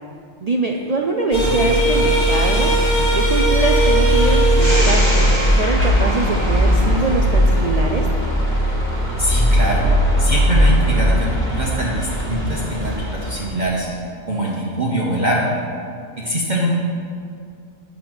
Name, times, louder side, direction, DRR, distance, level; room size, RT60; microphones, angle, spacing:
voice 1, 0.4-2.7 3.0-5.3 5.6-8.1, right 3 dB, 65° right, 1 dB, 0.4 m, -23 dB
sound 1, 1.3-13.5, equal, 20° left, 1.7 m, -17 dB
voice 2, 9.2-9.9 10.2-13.9 14.2-15.6 16.2-16.7, equal, 40° right, -4 dB, 1.0 m, -23 dB
8.3 x 5.2 x 6.1 m, 2.3 s
omnidirectional pair, 1.4 m